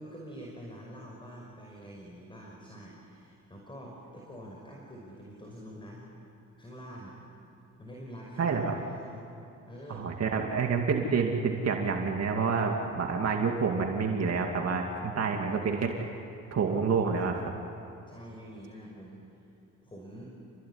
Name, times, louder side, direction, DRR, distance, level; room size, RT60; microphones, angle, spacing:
voice 1, 0.0-6.1 6.6-7.2 7.8-9.3 9.7-10.1 15.0-15.9 18.1-19.4 19.8-20.4, equal, 15° left, -1 dB, 5.5 m, -46 dB
voice 2, 8.4-8.8 9.9-15.9 16.5-17.5, right 5 dB, 55° right, 2 dB, 2.5 m, -28 dB
28.5 x 20.5 x 9.8 m, 2.9 s
cardioid pair, 90°, 30 cm